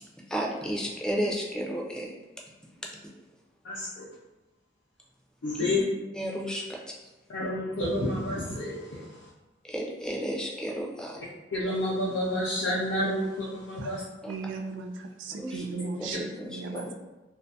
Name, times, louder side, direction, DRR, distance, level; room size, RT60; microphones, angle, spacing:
voice 1, 0.3-2.1 2.8-2.9 5.6-5.8 6.1-7.0 9.6-11.2 14.2-14.3 15.4-15.7 16.0-16.9, equal, 5° left, -1 dB, 0.3 m, -33 dB
voice 2, 3.6-4.0 5.4-5.8 7.3-9.3 11.5-14.0, left 1 dB, 85° left, -7 dB, 0.5 m, -29 dB
voice 3, 14.3-16.9, right 4 dB, 75° right, 5 dB, 0.3 m, -36 dB
2.4 x 2.2 x 2.6 m, 1.1 s
head